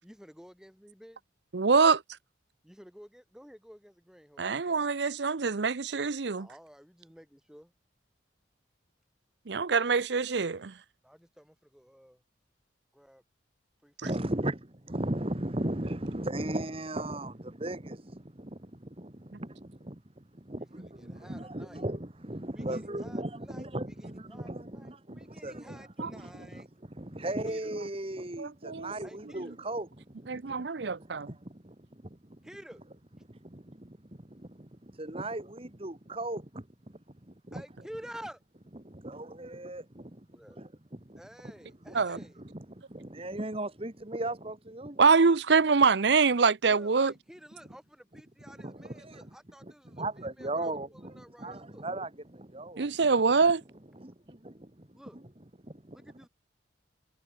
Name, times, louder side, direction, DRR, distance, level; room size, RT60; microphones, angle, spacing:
voice 1, 0.0-1.2 2.6-4.9 6.4-7.7 11.0-12.2 12.9-13.2 13.8-13.9 20.5-21.8 22.5-26.7 27.2-27.7 29.0-29.6 32.4-32.8 37.5-38.4 40.3-40.6 41.2-42.4 46.7-51.9 54.9-55.2 55.9-56.3, equal, 5° right, 6.2 m, -51 dB
voice 2, 1.5-2.0 4.4-6.5 9.5-10.7 26.0-26.1 28.4-28.9 30.3-31.3 41.9-42.2 45.0-47.1 52.8-53.6, right 5 dB, 65° right, 0.7 m, -24 dB
voice 3, 14.0-32.4 33.3-37.6 38.8-40.3 40.6-41.2 41.9-45.0 48.6-49.2 49.6-53.1 53.9-55.2 55.6-56.0, right 1 dB, 30° right, 1.6 m, -38 dB
head